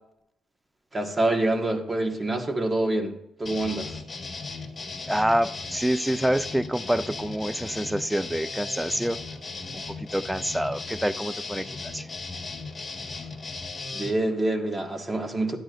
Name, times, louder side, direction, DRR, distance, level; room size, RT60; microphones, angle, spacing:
voice 1, 0.9-4.0 13.9-15.6, right 2 dB, 25° right, 1.8 m, -26 dB
sound 1, 3.5-14.1, left 3 dB, 30° left, 1.7 m, -36 dB
voice 2, 5.1-9.2 9.7-12.1, right 1 dB, 5° right, 0.4 m, -27 dB
12.0 x 8.8 x 2.6 m
cardioid pair, 70°, 0 cm